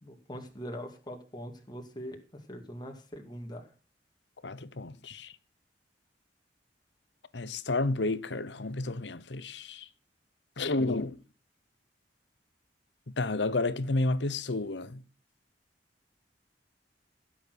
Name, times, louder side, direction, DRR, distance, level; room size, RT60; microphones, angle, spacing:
voice 1, 0.0-3.7, equal, 25° left, 2.4 m, -42 dB
voice 2, 4.4-5.4 7.3-9.9 10.6-11.2 13.1-15.0, left 2 dB, 70° left, 1.0 m, -31 dB
16.0 x 7.6 x 6.4 m
head